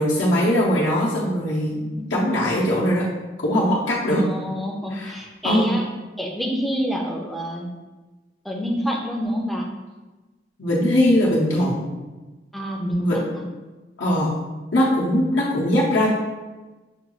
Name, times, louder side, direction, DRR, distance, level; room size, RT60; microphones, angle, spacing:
voice 1, 0.0-1.8 2.1-3.1 3.4-4.2 4.9-5.1 5.4-5.8 10.6-12.0 13.0-13.2 14.0-14.3 14.7-16.1, equal, 75° left, -6 dB, 0.7 m, -20 dB
voice 2, 2.0-2.4 4.2-5.9 6.2-7.7 8.4-9.7 12.5-13.5, equal, ahead, -1 dB, 0.4 m, -27 dB
6.5 x 2.3 x 3.0 m, 1.2 s
head